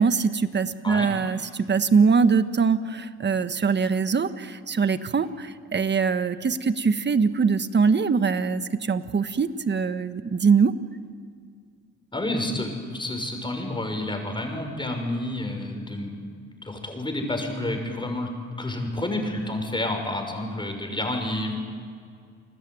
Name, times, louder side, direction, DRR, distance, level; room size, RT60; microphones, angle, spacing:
voice 1, 0.0-10.7, right 5 dB, 35° right, 11 dB, 1.4 m, -22 dB
voice 2, 12.1-16.3 16.6-18.3 18.6-21.6, left 1 dB, 15° left, 4 dB, 6.1 m, -29 dB
29.5 x 20.5 x 9.4 m, 2.2 s
cardioid pair, 90°, 30 cm